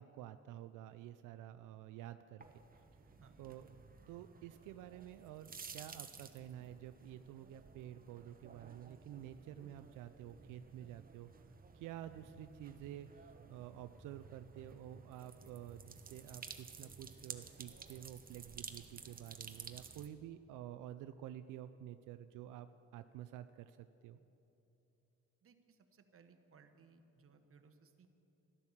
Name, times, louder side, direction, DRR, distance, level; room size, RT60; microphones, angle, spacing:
voice 1, 0.0-2.4 3.4-3.7 4.1-24.2, right 11 dB, 90° right, 11 dB, 0.5 m, -50 dB
sound 1, 2.4-20.1, right 5 dB, 30° right, 0.9 m, -54 dB
voice 2, 25.4-28.1, right 5 dB, 45° right, 7 dB, 1.2 m, -64 dB
12.5 x 11.5 x 7.2 m, 3.0 s
cardioid pair, 90°, 30 cm